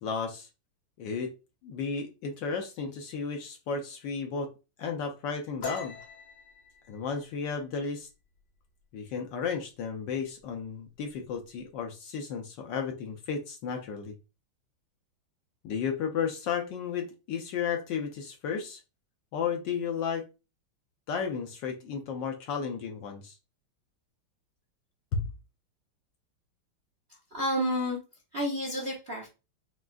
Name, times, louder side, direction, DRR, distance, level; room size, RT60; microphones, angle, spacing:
voice 1, 0.0-0.5 1.0-1.3 1.6-4.5 4.8-6.0 6.9-8.1 8.9-14.1 15.6-18.8 19.3-20.2 21.1-23.4 25.1-25.3, left 6 dB, 70° left, 4 dB, 1.2 m, -33 dB
sound 1, 5.6-9.0 9.4-9.7 10.1-10.6 10.9-11.6, left 6 dB, 55° left, 1.6 m, -43 dB
voice 2, 27.3-28.0 28.3-29.3, equal, 50° right, -2 dB, 0.7 m, -30 dB
6.0 x 2.4 x 2.4 m, 0.29 s
omnidirectional pair, 2.3 m